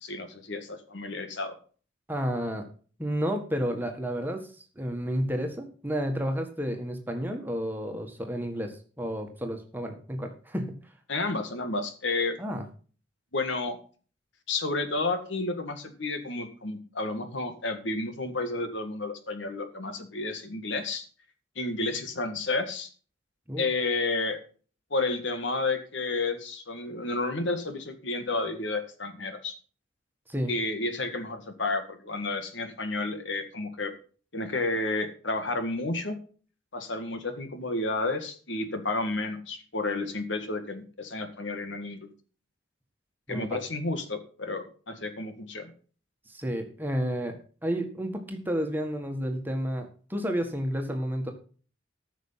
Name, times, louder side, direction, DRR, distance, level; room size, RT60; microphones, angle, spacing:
voice 1, 0.0-1.6 11.1-12.4 13.3-13.8 14.5-21.1 21.6-22.9 23.6-24.4 24.9-29.6 30.5-33.9 34.3-36.2 36.7-42.0 43.3-45.7, left 3 dB, 70° left, 8 dB, 1.8 m, -31 dB
voice 2, 2.1-2.6 3.0-4.4 4.7-10.7 12.4-12.6 23.5-23.7 30.3-30.5 43.3-43.5 46.3-51.3, equal, 10° right, 4 dB, 1.7 m, -31 dB
14.5 x 6.3 x 5.7 m, 0.40 s
head